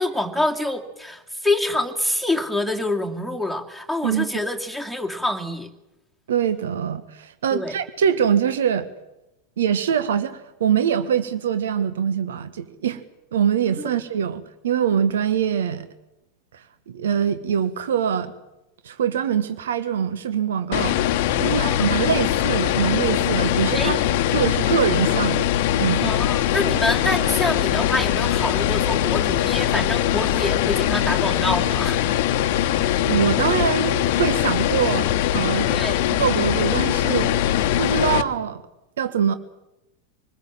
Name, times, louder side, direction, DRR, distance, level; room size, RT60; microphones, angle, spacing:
voice 1, 0.0-5.7 7.5-7.7 13.8-13.9 21.4-21.9 23.7-23.9 26.0-32.0 35.7-36.0, left 1 dB, ahead, 4 dB, 2.5 m, -26 dB
voice 2, 6.3-8.9 9.6-13.0 13.3-15.9 16.5-18.3 18.8-21.0 21.4-24.0 24.3-25.5 25.8-26.1 32.3-32.7 33.0-35.7 36.2-37.3 37.8-38.6 39.0-39.3, right 8 dB, 60° right, 11 dB, 1.4 m, -23 dB
sound 1, 20.7-38.2, left 12 dB, 50° left, 1.1 m, -21 dB
25.5 x 20.0 x 7.6 m, 0.92 s
figure-of-eight pair, 90°, 0 cm